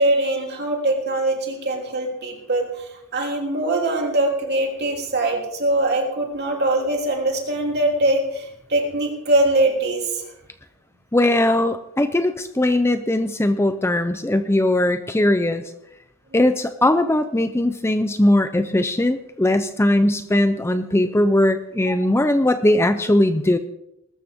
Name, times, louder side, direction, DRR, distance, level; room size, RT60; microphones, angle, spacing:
voice 1, 0.0-10.2 21.8-22.1, right 2 dB, 50° right, 1 dB, 3.3 m, -22 dB
voice 2, 11.1-15.6 16.3-23.6, left 1 dB, 10° left, 9 dB, 0.6 m, -19 dB
20.5 x 13.5 x 3.6 m, 0.86 s
head